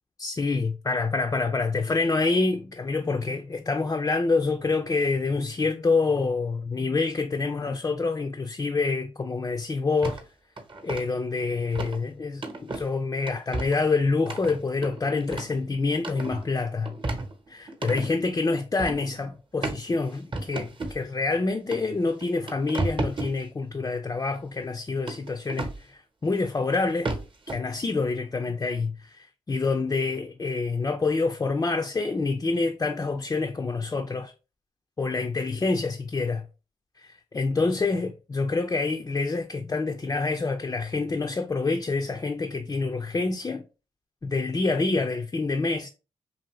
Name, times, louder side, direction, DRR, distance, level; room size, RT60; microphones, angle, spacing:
voice 1, 0.2-10.2 10.8-16.9 17.5-27.1 27.5-34.3 35.0-36.4 37.0-43.6 44.2-45.9, left 3 dB, 25° left, 0.4 m, -27 dB
sound 1, 10.0-10.2 10.6-11.0 11.7-12.0 12.4-12.9 13.3-13.8 14.3-15.6 15.9-16.5 16.8-18.1 18.8-19.1 19.6-19.8 20.3-21.0 21.7-21.8 22.2-23.3 25.1-25.8 26.7-26.8 27.0-27.6, right 2 dB, 35° right, 0.9 m, -32 dB
2.7 x 2.6 x 3.0 m
supercardioid pair, 45°, 14 cm